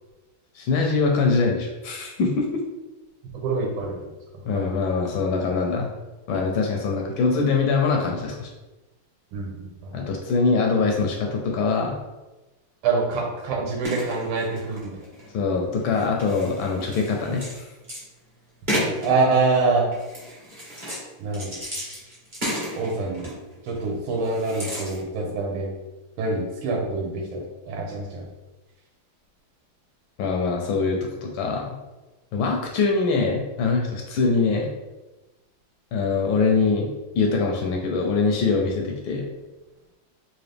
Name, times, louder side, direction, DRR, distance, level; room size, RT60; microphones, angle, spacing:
voice 1, 0.5-2.4 4.4-5.9 6.3-8.5 9.9-12.0 15.3-17.6 30.2-31.8 32.3-34.7 35.9-36.9 37.1-39.3, left 4 dB, 75° left, 1 dB, 1.2 m, -23 dB
voice 2, 3.4-4.1 4.5-4.6 9.3-9.9 12.8-15.0 18.7-19.9 21.2-21.6 22.8-23.3 23.6-25.7 26.2-28.3, right 3 dB, 75° right, -1 dB, 1.5 m, -25 dB
sound 1, 13.8-15.3 15.8-18.0 18.7-19.4 19.9-21.0 21.3-23.9 24.2-25.0, equal, 30° right, 0.9 m, -33 dB
3.8 x 2.6 x 3.3 m, 1.1 s
omnidirectional pair, 2.4 m